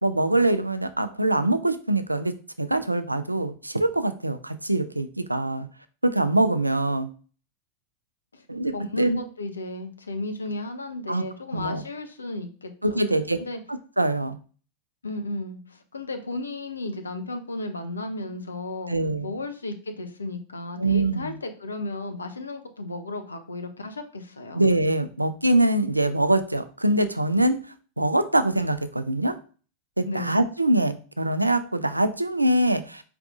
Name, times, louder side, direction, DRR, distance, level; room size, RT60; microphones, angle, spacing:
voice 1, 0.0-5.7 6.0-7.1 8.5-9.2 11.1-11.2 11.5-11.8 12.8-13.4 13.7-14.4 18.9-19.4 20.8-21.4 24.5-27.6 28.0-29.3 30.0-33.0, right 1 dB, 85° right, 11 dB, 0.3 m, -24 dB
voice 2, 8.7-13.0 13.4-13.6 15.0-19.0 19.2-24.6 30.0-30.4, left 2 dB, 75° left, 7 dB, 0.6 m, -34 dB
4.7 x 3.4 x 2.4 m, 0.38 s
figure-of-eight pair, 90°, 0 cm